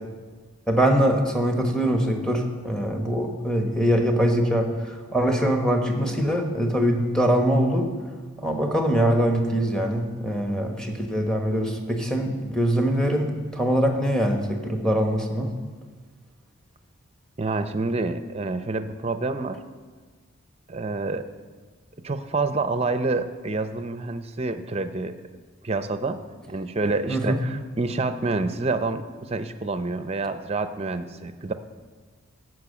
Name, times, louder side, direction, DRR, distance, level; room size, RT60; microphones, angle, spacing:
voice 1, 0.7-7.9 8.4-15.5 27.1-27.4, equal, 5° left, 3 dB, 1.1 m, -23 dB
voice 2, 17.4-19.6 20.7-21.3 22.0-25.1 25.6-26.2 26.5-31.5, right 3 dB, 30° right, 10 dB, 0.6 m, -27 dB
12.0 x 6.4 x 8.5 m, 1.5 s
head